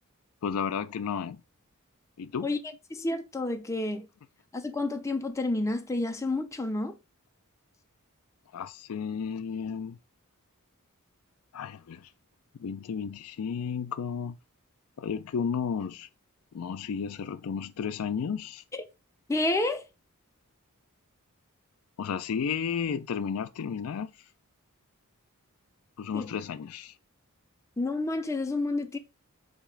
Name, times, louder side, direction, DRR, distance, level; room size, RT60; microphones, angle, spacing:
voice 1, 0.4-1.4 2.2-2.5 8.5-10.0 11.5-12.1 12.6-14.4 15.0-16.1 16.5-18.6 22.0-24.1 26.0-26.9, left 6 dB, 70° left, 0.4 m, -33 dB
voice 2, 2.9-4.1 4.5-7.0 18.7-18.8 19.3-19.9 26.1-26.3 27.8-29.0, left 2 dB, 15° left, 0.5 m, -29 dB
4.1 x 2.8 x 4.5 m
head